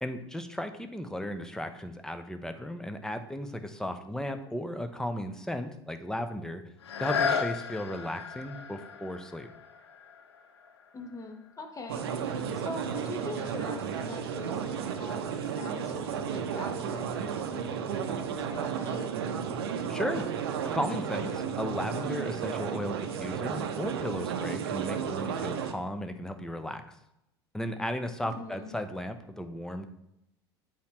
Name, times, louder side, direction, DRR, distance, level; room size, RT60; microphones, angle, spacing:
voice 1, 0.0-6.6 7.0-9.5 19.9-20.3 20.6-27.0 27.5-29.9, left 1 dB, 5° left, 8 dB, 0.6 m, -35 dB
sound 1, 6.8-12.4 13.0-13.1, left 6 dB, 75° left, 0.5 m, -35 dB
voice 2, 10.9-19.1 28.2-28.7, left 2 dB, 25° left, 4 dB, 1.1 m, -43 dB
sound 2, 11.9-25.7, right 7 dB, 65° right, 0.6 m, -33 dB
8.4 x 4.4 x 3.0 m, 0.83 s
figure-of-eight pair, 70°, 14 cm